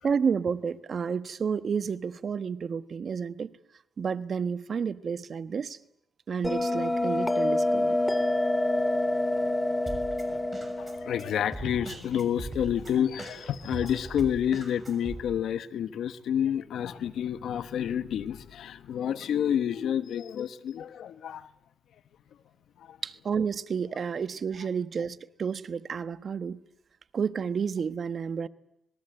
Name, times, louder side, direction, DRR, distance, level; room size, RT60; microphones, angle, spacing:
voice 1, 0.0-3.5 4.0-5.8 6.3-8.0 23.0-26.6 27.1-28.5, right 6 dB, 55° right, 1.2 m, -30 dB
Bell, 6.4-11.5, left 1 dB, 15° left, 2.2 m, -27 dB
Drum kit, 9.9-15.2, right 2 dB, 25° right, 6.5 m, -40 dB
voice 2, 10.8-21.5 22.8-23.0, left 9 dB, 75° left, 1.1 m, -29 dB
26.0 x 20.5 x 8.0 m
cardioid pair, 65°, 0 cm